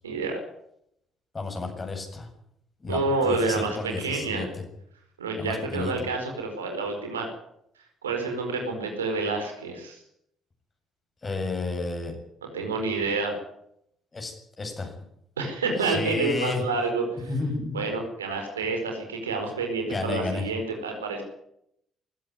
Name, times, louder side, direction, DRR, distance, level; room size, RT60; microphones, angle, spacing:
voice 1, 0.0-0.4 2.9-4.5 5.2-7.3 8.0-10.0 12.4-13.4 15.4-17.3 17.7-21.2, right 3 dB, 80° right, 3 dB, 4.7 m, -28 dB
voice 2, 1.3-2.3 2.8-4.5 5.4-5.9 11.2-12.1 14.1-14.9 15.8-16.6 17.2-17.8 19.8-20.4, left 3 dB, 30° left, 4 dB, 7.9 m, -31 dB
20.0 x 16.5 x 9.7 m, 0.76 s
figure-of-eight pair, 45°, 0 cm